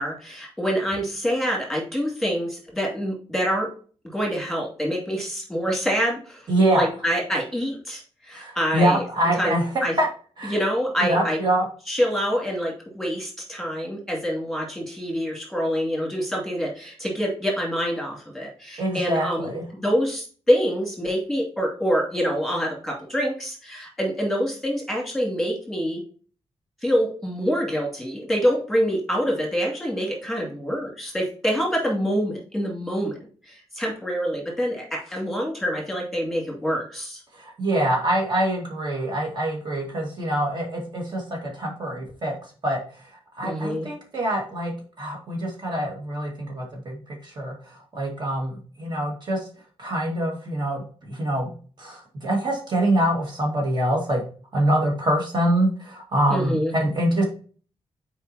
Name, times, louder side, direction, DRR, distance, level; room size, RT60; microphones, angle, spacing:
voice 1, 0.0-3.7 4.1-9.0 9.4-10.0 10.5-11.4 11.9-26.0 26.8-33.2 33.4-37.2 43.4-43.9 56.3-56.7, equal, ahead, -2 dB, 2.4 m, -26 dB
voice 2, 6.5-6.9 8.3-10.1 10.4-10.5 11.0-11.6 18.8-19.6 37.4-42.3 42.6-42.8 43.4-49.5 49.8-51.5 51.8-54.2 54.5-57.2, right 1 dB, 45° right, -1 dB, 1.9 m, -25 dB
7.2 x 4.8 x 2.8 m, 0.40 s
wide cardioid pair, 140°, 11 cm